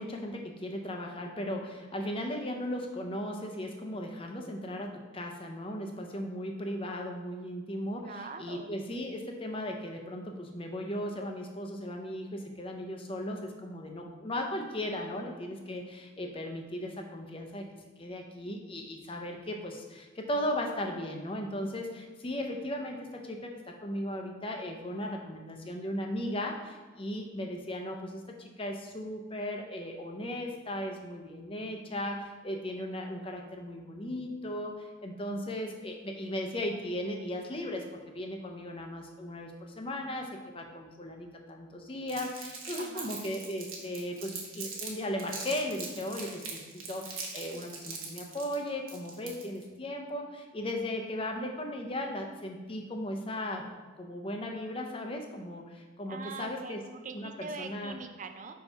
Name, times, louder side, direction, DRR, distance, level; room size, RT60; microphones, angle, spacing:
voice 1, 0.0-17.7 18.0-53.7 54.0-56.8 57.1-58.0, left 1 dB, 25° left, 2 dB, 0.6 m, -37 dB
voice 2, 8.0-8.7 42.8-43.1 56.1-58.5, right 4 dB, 35° right, 7 dB, 0.4 m, -42 dB
Crumpling crinkling, 42.1-44.9 45.2-49.6, right 5 dB, 85° right, 1.2 m, -41 dB
4.6 x 4.4 x 5.4 m, 1.3 s
head